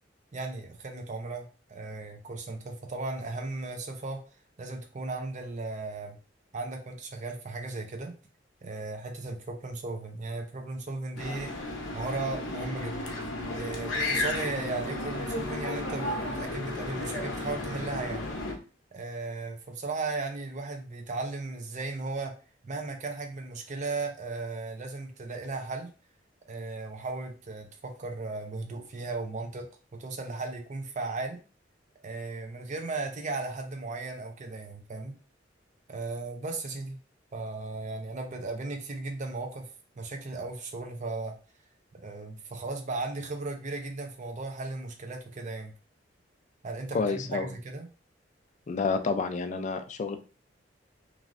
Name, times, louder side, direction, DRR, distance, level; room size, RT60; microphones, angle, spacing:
voice 1, 0.3-4.2 4.6-6.2 6.5-8.2 8.6-11.5 11.9-13.0 13.5-18.2 18.9-22.3 22.6-25.9 26.5-29.7 30.0-31.4 32.0-35.1 35.9-37.0 37.3-39.7 40.0-41.3 42.0-45.7 46.6-47.9, right 3 dB, 40° right, 4 dB, 0.5 m, -36 dB
sound 1, 11.2-18.5, left 2 dB, 80° left, 0.7 m, -33 dB
voice 2, 46.9-47.5 48.7-50.2, left 4 dB, 40° left, 8 dB, 0.3 m, -29 dB
3.1 x 2.5 x 2.5 m, 0.35 s
head